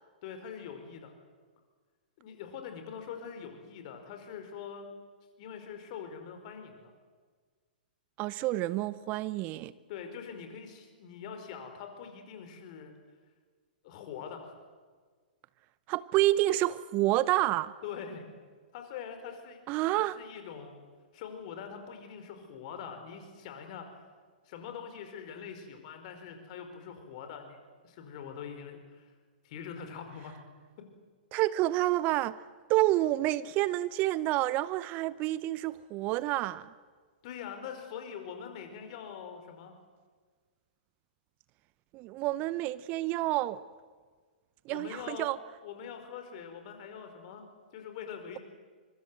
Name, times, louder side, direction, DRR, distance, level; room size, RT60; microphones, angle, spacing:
voice 1, 0.2-1.1 2.2-4.9 5.4-6.9 9.9-12.9 13.8-14.5 17.8-18.3 18.7-19.6 19.9-20.8 21.1-24.0 24.4-27.6 27.8-29.1 29.4-30.4 30.8-30.9 37.2-39.7 44.7-45.3 45.6-47.4 47.7-48.4, left 7 dB, 45° left, 5.1 m, -43 dB
voice 2, 8.2-9.7 15.9-17.7 19.7-20.2 31.3-32.4 32.7-36.7 41.9-43.6 44.7-45.4, right 16 dB, 35° right, 0.7 m, -28 dB
24.5 x 23.5 x 7.8 m
figure-of-eight pair, 110°, 5 cm